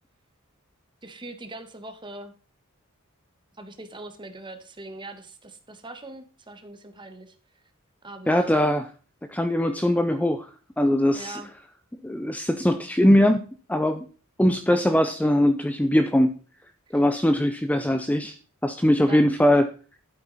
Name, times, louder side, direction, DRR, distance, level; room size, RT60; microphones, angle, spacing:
voice 1, 1.0-2.3 3.6-7.6 8.0-8.6 11.1-11.5 16.9-17.0 19.1-19.5, right 2 dB, 20° right, 7 dB, 1.4 m, -41 dB
voice 2, 8.3-8.8 9.3-10.5 10.8-11.4 12.0-13.4 13.7-14.1 14.4-16.3 16.9-18.4 18.6-19.7, left 1 dB, 5° left, 8 dB, 0.5 m, -21 dB
11.5 x 8.4 x 4.1 m, 0.39 s
head